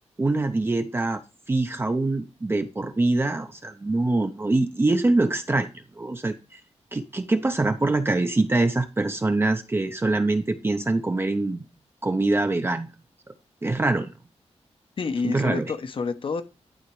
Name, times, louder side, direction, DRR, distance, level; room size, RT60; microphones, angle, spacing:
voice 1, 0.2-1.2 1.5-5.7 6.0-6.6 6.9-11.6 12.0-12.9 13.6-14.1 15.2-15.7, right 2 dB, 20° right, 0.6 m, -24 dB
voice 2, 15.0-16.4, left 4 dB, 50° left, 0.9 m, -28 dB
11.5 x 3.9 x 4.7 m
wide cardioid pair, 160°, 11 cm